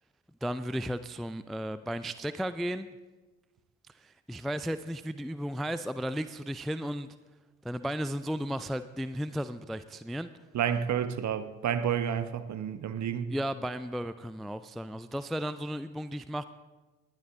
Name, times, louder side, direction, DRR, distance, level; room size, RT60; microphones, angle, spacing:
voice 1, 0.4-2.9 3.9-7.2 7.6-10.3 13.3-16.4, equal, ahead, 0.4 m, -34 dB
voice 2, 10.5-13.3, right 8 dB, 45° right, 1.0 m, -30 dB
19.5 x 11.5 x 3.6 m
figure-of-eight pair, 50°, 40 cm